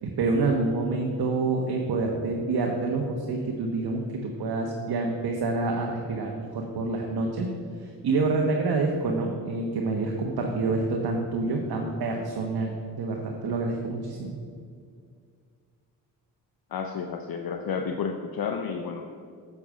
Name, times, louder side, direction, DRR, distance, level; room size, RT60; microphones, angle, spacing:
voice 1, 0.0-7.5 7.8-14.3, right 3 dB, 55° right, 1 dB, 1.3 m, -27 dB
voice 2, 16.7-19.1, left 6 dB, 50° left, 5 dB, 0.8 m, -31 dB
8.5 x 8.0 x 5.0 m, 2.2 s
supercardioid pair, 50°, 44 cm